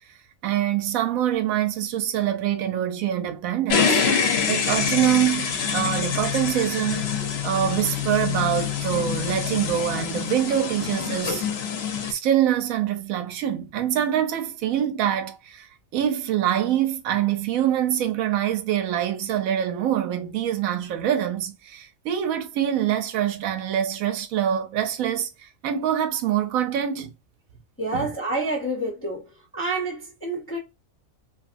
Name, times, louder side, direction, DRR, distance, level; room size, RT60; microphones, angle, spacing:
voice 1, 0.4-4.0 4.5-7.1 7.4-11.4 12.1-27.1 27.9-28.1, right 10 dB, 80° right, 1.0 m, -25 dB
sound 1, 3.7-12.1, left 6 dB, 60° left, 0.8 m, -26 dB
voice 2, 27.8-29.3 29.5-30.6, right 2 dB, 15° left, 0.4 m, -28 dB
2.9 x 2.4 x 2.4 m
omnidirectional pair, 1.4 m